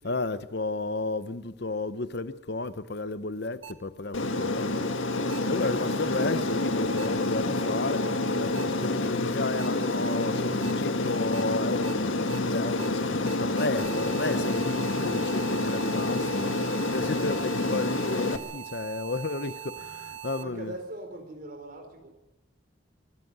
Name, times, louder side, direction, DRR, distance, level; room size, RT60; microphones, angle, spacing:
voice 1, 0.0-4.9 5.5-8.0 8.4-16.5 16.9-20.7, left 3 dB, 55° left, 0.8 m, -32 dB
sound 1, 3.6-3.7 5.3-5.4 7.0-7.1 8.5-8.6 9.6-9.7 10.6-10.7 11.3-11.4 11.8-11.9 12.3-12.4 12.8-12.9 13.3-20.4, right 9 dB, 80° right, 1.4 m, -41 dB
Aircraft, 4.1-18.4, left 2 dB, 80° left, 1.7 m, -28 dB
voice 2, 20.3-22.1, right 1 dB, 45° right, 4.1 m, -42 dB
25.0 x 13.0 x 9.3 m
head